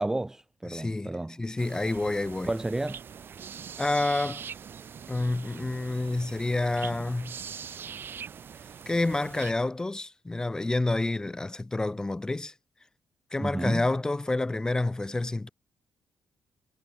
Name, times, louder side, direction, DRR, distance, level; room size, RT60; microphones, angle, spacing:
voice 1, 0.0-1.4 2.5-3.0 13.4-13.9, right 2 dB, 10° right, 0.7 m, -31 dB
voice 2, 0.7-1.1 1.4-2.5 3.8-4.4 5.1-7.4 8.9-12.5 13.3-15.5, left 2 dB, 15° left, 2.3 m, -28 dB
sound 1, 1.6-9.5, right 7 dB, 50° right, 1.5 m, -43 dB
cardioid pair, 115°, 5 cm